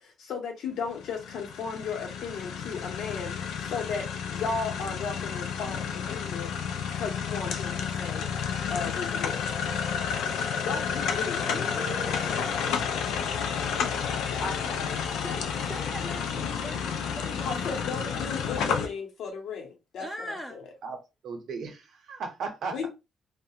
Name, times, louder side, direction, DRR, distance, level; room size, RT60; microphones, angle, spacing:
voice 1, 0.0-6.5 6.9-8.3 8.7-9.6 10.6-12.2 14.4-15.0 17.4-20.7 22.7-22.9, left 5 dB, 65° left, 0.8 m, -36 dB
sound 1, 0.9-18.9, left 7 dB, 85° left, 0.4 m, -31 dB
voice 2, 11.4-13.1 15.2-17.7 20.0-20.6, equal, 5° left, 0.3 m, -41 dB
voice 3, 21.2-22.9, right 4 dB, 60° right, 0.7 m, -36 dB
2.4 x 2.1 x 2.8 m
cardioid pair, 155°, 0 cm